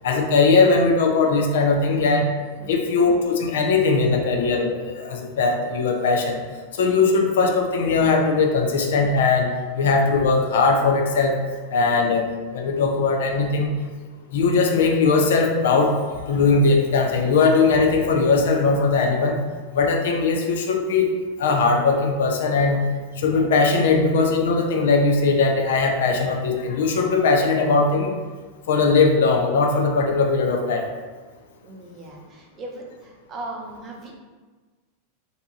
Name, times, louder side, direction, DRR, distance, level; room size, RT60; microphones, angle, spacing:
voice 1, 0.0-2.2 2.7-6.4 6.8-9.5 9.7-11.4 11.7-12.3 12.5-13.7 14.3-16.0 16.3-19.4 19.7-21.1 21.4-22.8 23.2-28.2 28.7-30.9, left 4 dB, 70° left, 2 dB, 0.4 m, -19 dB
voice 2, 31.6-34.1, right 2 dB, 35° right, -1 dB, 0.6 m, -38 dB
2.6 x 2.3 x 2.8 m, 1.4 s
hypercardioid pair, 95°, 0 cm